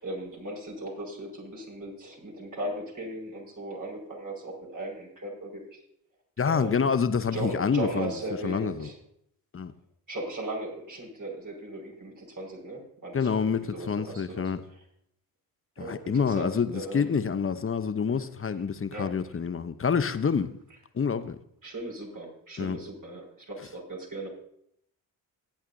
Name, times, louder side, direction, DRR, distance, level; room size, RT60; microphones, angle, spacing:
voice 1, 0.0-5.8 6.5-6.9 7.3-9.0 10.1-14.8 15.8-17.1 18.9-19.2 21.6-24.3, right 2 dB, 40° right, 5.2 m, -37 dB
voice 2, 6.4-8.1 8.4-8.9 9.5-9.7 13.1-14.6 15.8-20.5 20.9-21.4 22.6-22.8, left 6 dB, 25° left, 0.8 m, -27 dB
17.0 x 8.6 x 2.7 m
hypercardioid pair, 50°, 48 cm